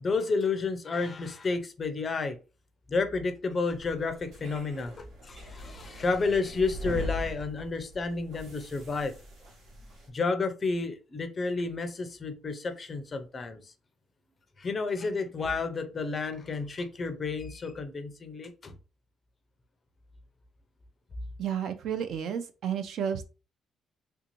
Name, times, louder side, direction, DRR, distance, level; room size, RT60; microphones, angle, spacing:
voice 1, 0.0-2.4 2.9-9.1 10.1-13.6 14.6-18.7, left 4 dB, 25° left, 8 dB, 0.4 m, -31 dB
sound 1, 3.7-10.1, left 1 dB, 80° right, 1.3 m, -41 dB
voice 2, 21.4-23.3, right 8 dB, 60° right, 9 dB, 0.4 m, -31 dB
3.3 x 2.5 x 2.9 m, 0.32 s
cardioid pair, 170°, 0 cm